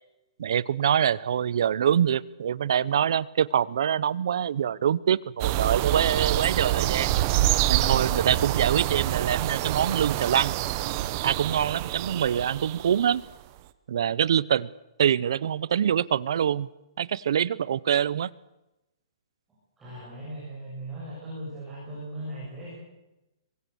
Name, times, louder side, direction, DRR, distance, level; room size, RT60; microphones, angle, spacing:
voice 1, 0.4-7.1 7.7-10.5 11.2-13.2 13.9-14.7 15.0-16.7 17.0-18.3, right 9 dB, 55° right, 22 dB, 0.7 m, -25 dB
sound 1, 5.4-13.1, right 14 dB, 25° right, 0.9 m, -26 dB
voice 2, 19.8-22.8, right 1 dB, 10° right, -9 dB, 7.5 m, -38 dB
24.0 x 21.5 x 7.0 m, 0.94 s
hypercardioid pair, 175°, 3 cm